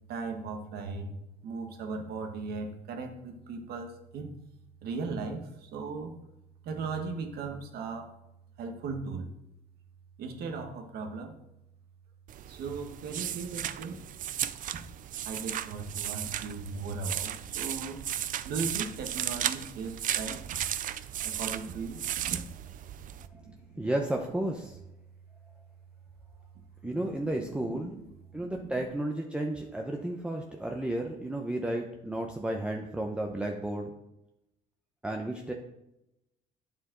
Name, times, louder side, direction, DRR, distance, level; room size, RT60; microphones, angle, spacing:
voice 1, 0.1-1.1 1.4-4.3 4.8-6.1 6.6-8.1 8.6-9.3 10.2-11.4 12.5-14.0 15.2-18.0 18.4-20.4 21.2-22.4 23.4-23.9 26.8-27.3 27.8-27.9 28.3-28.8, right 4 dB, 70° right, 4 dB, 1.5 m, -37 dB
sound 1, 12.3-23.3, right 11 dB, 55° right, 0.5 m, -35 dB
voice 2, 23.8-24.8 26.8-27.9 28.3-33.9 35.0-35.5, right 1 dB, 5° right, 1 dB, 0.8 m, -32 dB
9.0 x 7.1 x 3.9 m, 0.88 s
cardioid pair, 110°, 17 cm